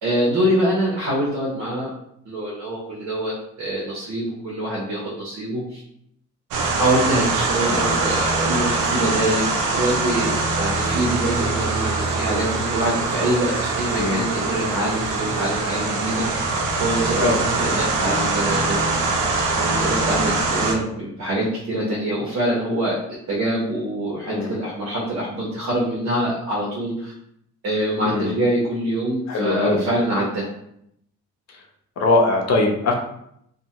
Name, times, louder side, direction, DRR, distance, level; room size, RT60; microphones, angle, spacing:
voice 1, 0.0-1.9 2.2-3.3 3.6-5.8 6.8-16.4 16.8-18.9 19.6-23.0 23.3-27.1 27.6-30.5, right 1 dB, 70° right, -5 dB, 1.0 m, -25 dB
sound 1, 6.5-20.7, right 3 dB, 90° right, 0.5 m, -23 dB
voice 2, 7.6-8.1 14.0-14.2 17.2-17.4 24.3-24.5 28.0-28.3 29.3-29.8 32.0-32.9, left 2 dB, 60° left, 1 dB, 0.7 m, -21 dB
2.7 x 2.2 x 2.9 m, 0.73 s
cardioid pair, 90°, 30 cm